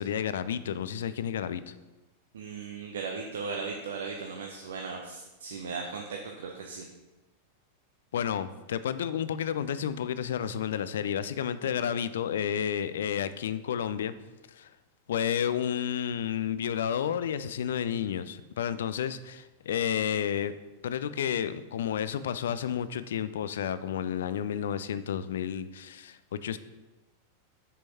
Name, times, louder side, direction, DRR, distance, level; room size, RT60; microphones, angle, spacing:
voice 1, 0.0-1.7 8.1-14.1 14.5-14.7 15.1-20.5 20.8-26.6, left 9 dB, 60° left, 14 dB, 0.3 m, -31 dB
voice 2, 2.3-6.9, right 4 dB, 65° right, 2 dB, 0.6 m, -37 dB
7.4 x 6.2 x 2.8 m, 1.1 s
figure-of-eight pair, 90°, 0 cm